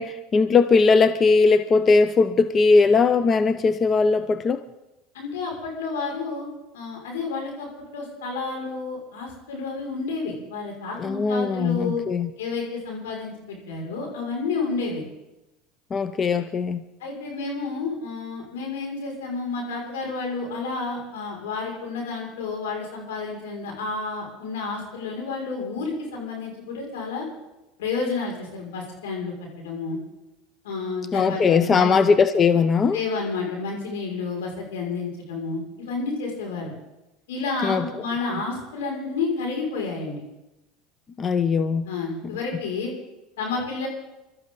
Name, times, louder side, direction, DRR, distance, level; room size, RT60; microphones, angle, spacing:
voice 1, 0.0-4.6 11.0-12.3 15.9-16.8 31.1-33.0 37.6-37.9 41.2-41.9, left 4 dB, 30° left, 11 dB, 0.7 m, -19 dB
voice 2, 5.1-6.5 6.7-12.0 12.4-15.0 17.0-27.3 27.8-30.0 30.6-31.9 32.9-36.7 37.3-40.2 41.9-42.9 43.4-43.9, left 4 dB, 85° left, -1 dB, 5.9 m, -30 dB
24.0 x 13.0 x 4.0 m, 0.97 s
supercardioid pair, 95°, 0 cm